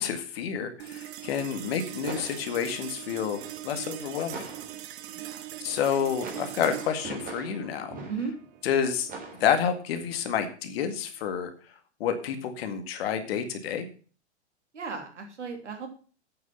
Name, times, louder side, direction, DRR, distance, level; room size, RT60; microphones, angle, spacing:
voice 1, 0.0-4.4 5.6-8.0 8.6-9.1 9.4-11.5 12.0-13.9, left 8 dB, 60° left, 8 dB, 2.1 m, -29 dB
sound 1, 0.8-11.4, right 13 dB, 50° right, 1.2 m, -42 dB
sound 2, 1.0-5.1 5.5-8.6 9.1-10.4, right 3 dB, 25° right, 3.9 m, -43 dB
voice 2, 5.1-5.5 8.1-8.3 14.7-15.9, right 5 dB, 80° right, 4 dB, 3.1 m, -36 dB
8.8 x 7.9 x 5.7 m, 0.40 s
figure-of-eight pair, 100°, 35 cm